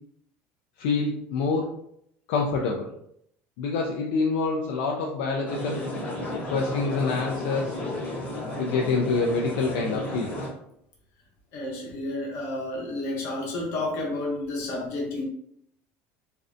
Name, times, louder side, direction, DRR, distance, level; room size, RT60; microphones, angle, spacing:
voice 1, 0.8-1.7 2.3-2.9 3.6-5.8 6.5-7.8 8.6-10.3, left 4 dB, 75° left, -1 dB, 0.3 m, -26 dB
sound 1, 5.5-10.5, left 1 dB, 20° left, 0.6 m, -33 dB
voice 2, 11.5-15.2, left 2 dB, 50° left, -2 dB, 0.8 m, -31 dB
2.5 x 2.1 x 2.5 m, 0.73 s
cardioid pair, 170°, 6 cm